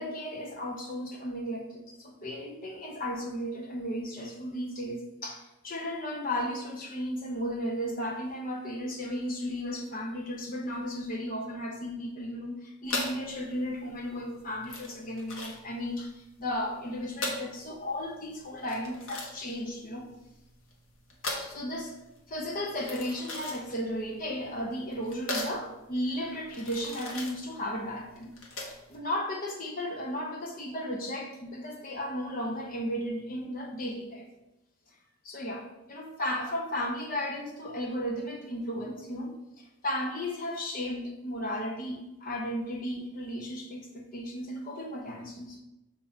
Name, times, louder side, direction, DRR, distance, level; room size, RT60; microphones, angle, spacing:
voice 1, 0.0-20.1 21.3-22.0 22.3-28.3 28.9-34.3 35.2-43.8 44.1-45.6, equal, 40° left, 0 dB, 1.0 m, -35 dB
sound 1, 12.8-29.0, left 2 dB, 60° left, 1.2 m, -39 dB
7.5 x 2.9 x 5.1 m, 0.97 s
head